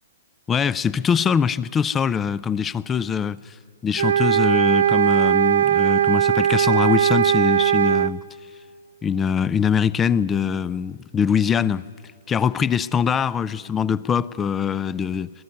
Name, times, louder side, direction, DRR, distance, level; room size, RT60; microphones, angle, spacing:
voice 1, 0.5-3.5 3.8-8.2 9.0-11.9 12.3-15.3, left 7 dB, 15° left, 0.4 m, -23 dB
sound 1, 4.0-8.1, right 10 dB, 80° right, 0.7 m, -19 dB
22.0 x 13.0 x 9.4 m
hypercardioid pair, 125°, 0 cm